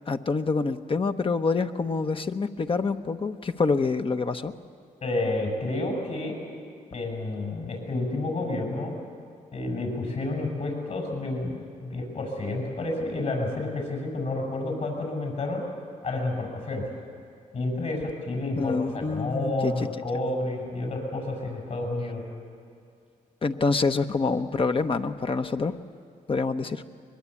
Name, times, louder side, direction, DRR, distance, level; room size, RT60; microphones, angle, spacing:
voice 1, 0.1-4.5 18.5-19.9 23.4-25.7 26.3-26.8, left 4 dB, 40° left, 8 dB, 1.0 m, -26 dB
voice 2, 5.0-6.4 6.9-8.9 9.5-15.6 16.0-16.9 17.5-22.2, left 2 dB, 60° left, 1 dB, 7.4 m, -30 dB
22.0 x 21.5 x 8.5 m, 2.4 s
cardioid pair, 80°, 14 cm